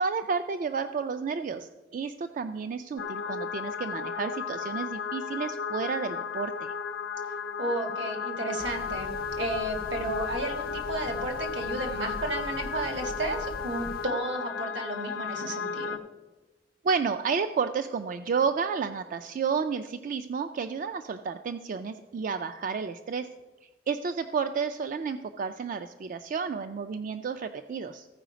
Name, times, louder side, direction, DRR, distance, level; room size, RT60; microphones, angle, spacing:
voice 1, 0.0-6.7 16.8-23.3 23.9-28.1, right 5 dB, 45° right, 9 dB, 0.3 m, -31 dB
sound 1, 3.0-16.0, left 5 dB, 90° left, 0.7 m, -34 dB
voice 2, 7.6-9.1 9.4-16.0, right 1 dB, 75° right, 3 dB, 1.6 m, -33 dB
sound 2, 8.6-14.1, left 2 dB, 55° left, 0.4 m, -43 dB
14.5 x 4.8 x 5.0 m, 1.2 s
head